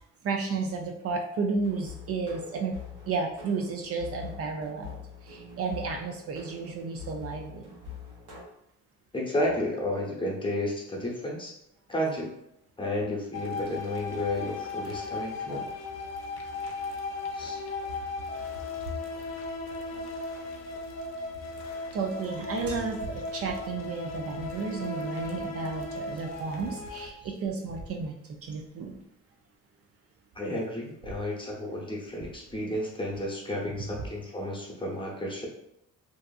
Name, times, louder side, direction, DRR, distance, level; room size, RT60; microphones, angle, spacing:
voice 1, 0.2-2.7 3.1-5.0 5.3-7.6 21.9-28.1 28.4-29.0, right 4 dB, 50° right, 3 dB, 0.4 m, -32 dB
sound 1, 1.5-8.4, left 6 dB, 80° right, 1.1 m, -44 dB
voice 2, 9.1-11.5 11.9-12.3 12.8-15.7 17.3-17.6 30.3-35.5, left 1 dB, 15° left, -3 dB, 0.8 m, -32 dB
sound 2, 13.3-27.1, left 3 dB, 60° left, 0.6 m, -37 dB
2.6 x 2.4 x 2.3 m, 0.81 s
cardioid pair, 90°, 30 cm